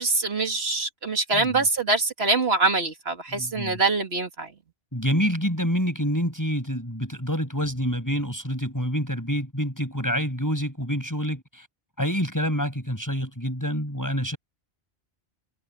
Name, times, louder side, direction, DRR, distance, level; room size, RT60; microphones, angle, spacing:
voice 1, 0.0-4.5, right 3 dB, 75° right, 2.6 m, -24 dB
voice 2, 1.3-1.6 3.3-3.8 4.9-11.7 12.0-14.4, equal, 15° left, 5.8 m, -27 dB
omnidirectional pair, 1.1 m